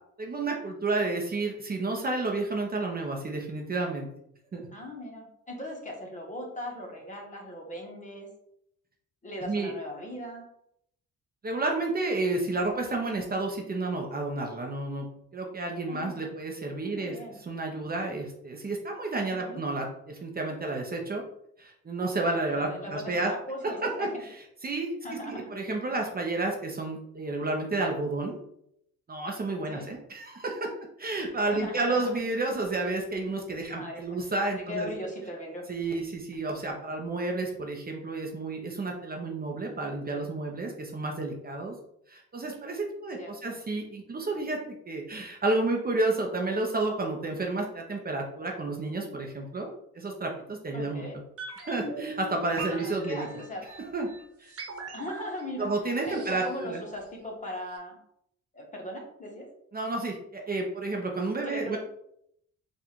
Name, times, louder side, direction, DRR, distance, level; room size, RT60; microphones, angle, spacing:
voice 1, 0.2-4.1 4.5-4.7 9.4-9.7 11.4-15.1 15.3-17.1 17.4-21.2 21.6-23.3 24.0-24.4 24.6-28.4 29.1-30.7 31.0-34.9 35.7-41.7 42.1-49.7 49.9-51.0 51.6-53.3 53.8-54.1 54.4-54.5 55.6-56.8 59.7-61.8, right 2 dB, 30° right, 1 dB, 0.8 m, -31 dB
voice 2, 4.7-8.3 9.2-10.4 15.9-16.3 16.8-17.4 19.3-19.6 22.5-24.2 25.0-25.5 29.7-29.9 31.5-32.2 33.7-34.2 34.7-35.7 43.2-43.6 50.7-51.2 52.7-53.6 54.9-58.0 58.5-59.5 61.4-61.8, left 1 dB, 25° left, 0 dB, 1.2 m, -39 dB
sound 1, 51.4-57.4 57.7-57.8, right 3 dB, 50° right, 1.2 m, -41 dB
3.8 x 2.5 x 4.4 m, 0.73 s
cardioid pair, 90°, 30 cm